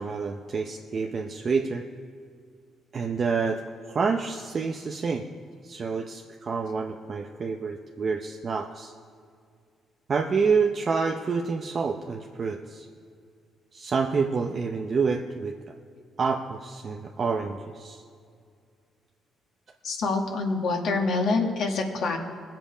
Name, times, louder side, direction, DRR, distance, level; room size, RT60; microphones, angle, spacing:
voice 1, 0.0-1.9 2.9-3.6 3.9-5.3 5.6-8.9 10.1-12.9 13.7-15.6 16.2-18.0, right 5 dB, 40° right, 3 dB, 0.7 m, -28 dB
voice 2, 19.8-22.2, left 3 dB, 65° left, 2 dB, 1.6 m, -26 dB
21.0 x 7.5 x 5.0 m, 2.2 s
cardioid pair, 115°, 0 cm